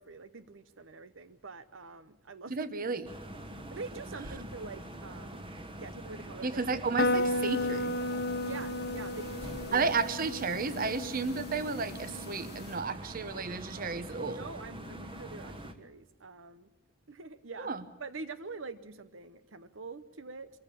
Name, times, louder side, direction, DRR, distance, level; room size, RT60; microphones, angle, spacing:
voice 1, 0.0-2.9 3.7-5.4 5.8-6.6 8.4-9.8 14.2-16.7 17.1-20.5, right 4 dB, 90° right, 13 dB, 0.9 m, -45 dB
voice 2, 2.5-3.1 6.4-8.0 9.7-14.5 17.6-17.8, right 4 dB, 50° right, 13 dB, 1.0 m, -32 dB
sound 1, 3.0-15.7, right 1 dB, 30° right, 1.3 m, -44 dB
sound 2, 7.0-12.7, left 2 dB, 55° left, 1.0 m, -34 dB
23.5 x 14.5 x 8.5 m, 0.94 s
head